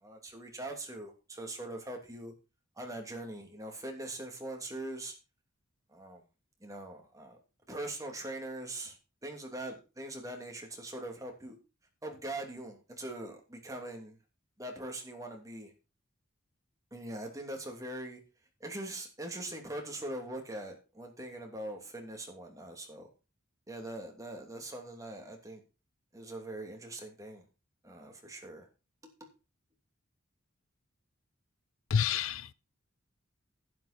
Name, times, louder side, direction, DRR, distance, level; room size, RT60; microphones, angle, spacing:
voice 1, 0.0-2.3 2.8-5.1 5.9-6.2 6.6-7.4 7.7-9.0 9.2-11.5 12.0-14.2 14.6-15.7 16.9-18.2 18.6-23.1 23.7-25.6 26.1-27.4 27.8-28.7, right 1 dB, 15° right, 2.9 m, -42 dB
voice 2, 31.9-32.5, left 7 dB, 65° left, 0.5 m, -29 dB
11.5 x 9.5 x 4.4 m
head